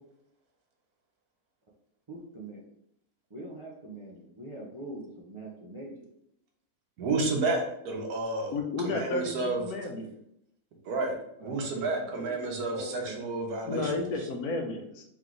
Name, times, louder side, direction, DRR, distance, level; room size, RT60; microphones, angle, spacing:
voice 1, 2.1-2.7 3.3-6.1 11.4-13.2, right 1 dB, 40° right, -4 dB, 0.4 m, -43 dB
voice 2, 7.0-8.6 8.8-9.6 10.8-13.9, right 3 dB, 85° right, 2 dB, 1.3 m, -31 dB
voice 3, 8.5-10.1 13.6-15.0, left 3 dB, 80° left, 3 dB, 1.2 m, -32 dB
3.4 x 3.0 x 3.7 m, 0.76 s
omnidirectional pair, 1.6 m